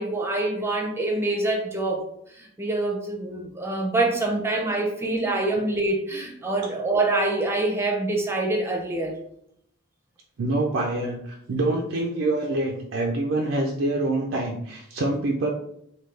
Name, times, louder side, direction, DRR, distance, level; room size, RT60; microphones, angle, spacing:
voice 1, 0.0-2.0 2.4-9.1, right 2 dB, 10° right, 0 dB, 0.5 m, -25 dB
voice 2, 10.4-15.5, right 2 dB, 65° right, 0 dB, 0.4 m, -26 dB
3.4 x 2.3 x 3.1 m, 0.71 s
head